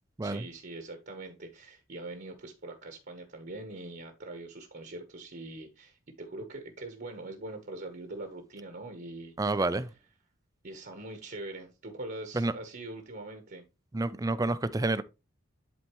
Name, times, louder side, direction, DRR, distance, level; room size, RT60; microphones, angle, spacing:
voice 1, 0.2-9.6 10.6-13.6, right 2 dB, 50° right, 1.1 m, -43 dB
voice 2, 9.4-9.9 12.3-12.5 13.9-15.0, right 2 dB, 15° right, 0.4 m, -29 dB
11.0 x 4.2 x 3.0 m
head